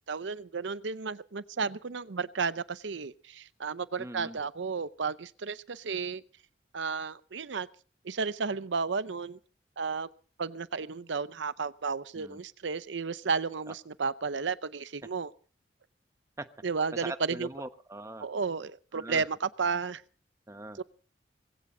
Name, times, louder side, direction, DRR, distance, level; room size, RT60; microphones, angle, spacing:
voice 1, 0.1-6.2 6.7-7.7 8.0-9.4 9.8-10.1 10.4-15.3 16.6-17.5 18.2-20.0 20.8-20.9, right 5 dB, 85° right, 0.7 m, -33 dB
voice 2, 4.0-4.4 12.2-12.4 16.4-16.5 16.9-18.3 18.9-19.2 20.5-20.8, right 1 dB, 15° right, 1.1 m, -41 dB
21.0 x 16.0 x 3.9 m
head